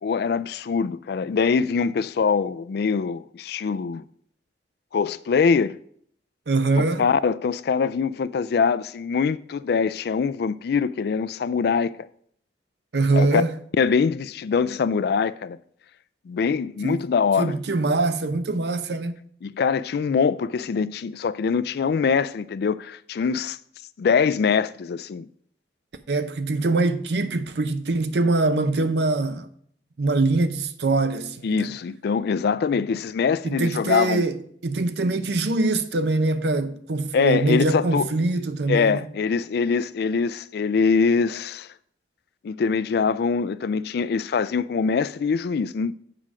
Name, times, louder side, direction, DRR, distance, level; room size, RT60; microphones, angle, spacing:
voice 1, 0.0-4.0 4.9-5.8 7.0-12.1 13.1-13.4 13.8-15.6 16.3-17.6 19.4-23.6 24.0-25.3 31.4-34.2 37.1-38.1 38.7-41.7 42.4-45.9, left 5 dB, 65° left, 0.3 m, -23 dB
voice 2, 6.5-7.0 12.9-13.5 16.8-17.0 17.4-19.1 26.1-29.5 30.0-31.7 33.4-39.1, right 3 dB, 70° right, 0.6 m, -23 dB
7.5 x 4.9 x 6.0 m
head